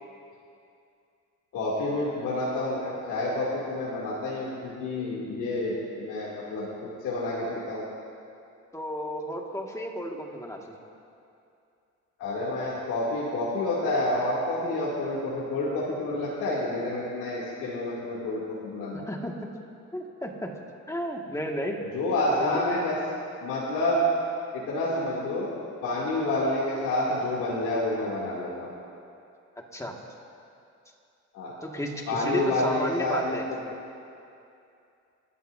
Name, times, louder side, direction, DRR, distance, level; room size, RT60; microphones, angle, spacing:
voice 1, 1.5-6.7 7.0-7.8 12.2-19.1 21.9-22.9 23.4-24.0 24.5-25.5 25.8-28.7 31.3-31.5 32.1-33.6, left 2 dB, 85° left, -8 dB, 2.8 m, -29 dB
voice 2, 8.7-10.8 18.9-19.5 19.9-20.5 20.9-21.8 22.2-22.6 29.7-29.9 31.6-33.5, equal, 10° left, 0 dB, 1.9 m, -33 dB
28.0 x 12.5 x 2.7 m, 2.6 s
cardioid pair, 90°, 30 cm